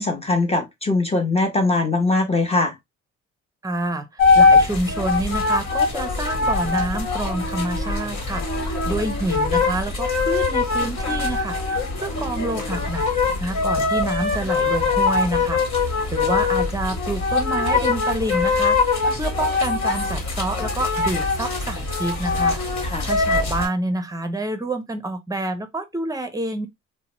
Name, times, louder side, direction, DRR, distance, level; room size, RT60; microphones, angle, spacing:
voice 1, 0.0-2.7 22.8-23.1, left 2 dB, 20° left, 0.8 m, -21 dB
voice 2, 3.6-13.1 13.4-26.7, right 2 dB, 10° right, 0.6 m, -28 dB
sound 1, 4.2-23.7, left 4 dB, 65° left, 1.5 m, -22 dB
2.8 x 2.2 x 2.9 m
cardioid pair, 90°, 30 cm